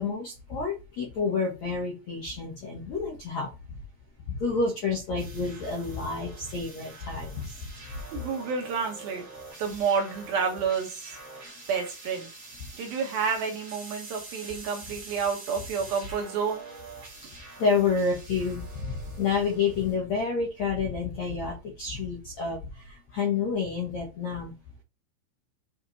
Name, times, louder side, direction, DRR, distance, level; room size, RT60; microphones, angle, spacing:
voice 1, 0.0-3.8 4.3-7.7 17.2-24.5, left 5 dB, 75° left, 0 dB, 1.6 m, -29 dB
sound 1, 5.2-19.9, right 3 dB, 30° right, 3.0 m, -46 dB
voice 2, 8.1-9.3 9.6-11.1 11.7-12.3 12.8-16.6, right 6 dB, 70° right, 3 dB, 2.3 m, -29 dB
8.4 x 5.1 x 4.2 m, 0.29 s
omnidirectional pair, 5.8 m